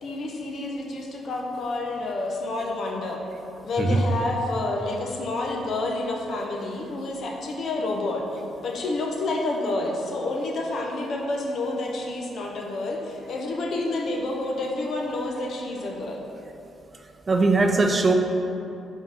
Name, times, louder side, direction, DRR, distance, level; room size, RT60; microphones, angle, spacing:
voice 1, 0.0-3.2 3.6-8.2 8.6-16.2, left 2 dB, 60° left, 0 dB, 0.9 m, -29 dB
voice 2, 17.3-18.1, right 3 dB, 30° right, 5 dB, 0.5 m, -20 dB
4.8 x 3.8 x 5.4 m, 2.7 s
cardioid pair, 90°, 0 cm